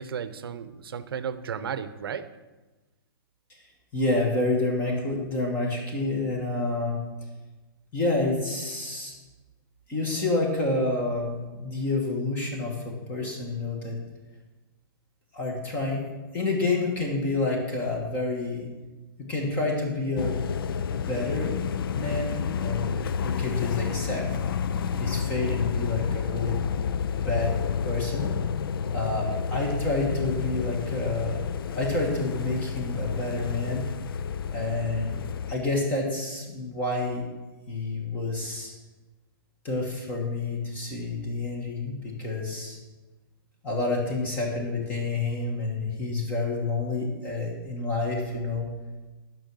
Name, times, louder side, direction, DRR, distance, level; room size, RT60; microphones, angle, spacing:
voice 1, 0.0-2.3, right 7 dB, 90° right, 13 dB, 0.7 m, -34 dB
voice 2, 3.9-7.0 7.9-9.1 9.9-14.0 15.3-16.0 16.3-18.7 19.2-20.4 20.9-21.5 21.9-24.3 25.0-26.7 27.1-27.6 27.8-28.3 28.9-31.4 31.7-33.9 34.5-35.2 35.5-37.3 37.7-38.7 39.6-42.8 43.6-48.7, left 2 dB, 15° left, 0 dB, 1.5 m, -29 dB
sound 1, 20.2-35.5, left 6 dB, 75° left, 0.4 m, -30 dB
10.5 x 6.0 x 6.2 m, 1.2 s
hypercardioid pair, 175°, 12 cm